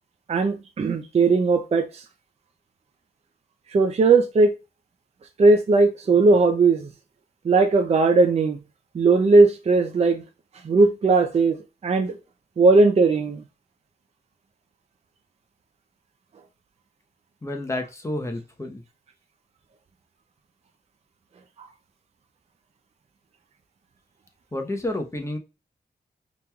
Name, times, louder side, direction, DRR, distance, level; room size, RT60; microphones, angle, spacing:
voice 1, 0.3-2.0 3.7-4.5 5.4-6.9 7.4-8.6 8.9-10.2 10.6-11.6 11.8-12.2 12.6-13.4 21.6-21.7, right 3 dB, 40° right, 0.4 m, -18 dB
voice 2, 17.4-18.8 24.5-25.4, left 1 dB, 15° left, 0.8 m, -30 dB
5.2 x 3.0 x 2.3 m
wide cardioid pair, 120°, 17 cm